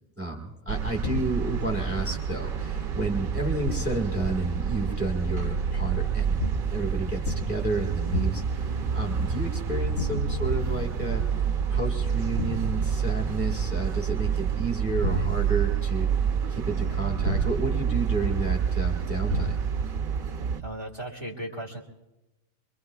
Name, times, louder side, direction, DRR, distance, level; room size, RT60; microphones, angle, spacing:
voice 1, 0.2-6.4 6.7-16.1 16.5-19.6, right 2 dB, 10° right, 0 dB, 1.8 m, -31 dB
sound 1, 0.7-20.6, right 7 dB, 50° right, 0.8 m, -28 dB
sound 2, 1.0-1.6 3.6-4.1 6.4-6.8 7.2-7.7 8.1-8.6 9.9-10.5 12.4-12.8 15.0-15.6 17.2-17.8 19.3-19.8, left 3 dB, 70° left, 2.5 m, -32 dB
voice 2, 20.6-21.8, right 1 dB, 20° left, 0 dB, 2.0 m, -36 dB
26.5 x 23.0 x 2.4 m, 1.0 s
omnidirectional pair, 1.5 m